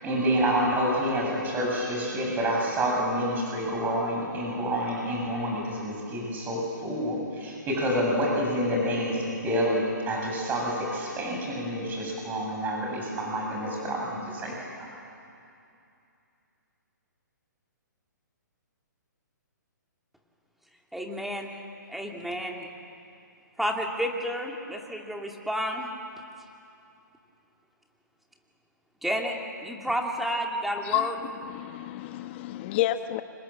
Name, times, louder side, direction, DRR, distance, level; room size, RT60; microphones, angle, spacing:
voice 1, 0.0-14.5 14.8-14.9, equal, 15° right, -2 dB, 7.6 m, -28 dB
voice 2, 20.9-21.5 21.9-22.7 23.6-25.9 29.0-29.4 29.6-31.2, equal, ahead, 1 dB, 2.5 m, -30 dB
voice 3, 30.8-33.2, left 13 dB, 35° left, 10 dB, 1.0 m, -30 dB
29.5 x 26.5 x 7.5 m, 2.6 s
hypercardioid pair, 135°, 10 cm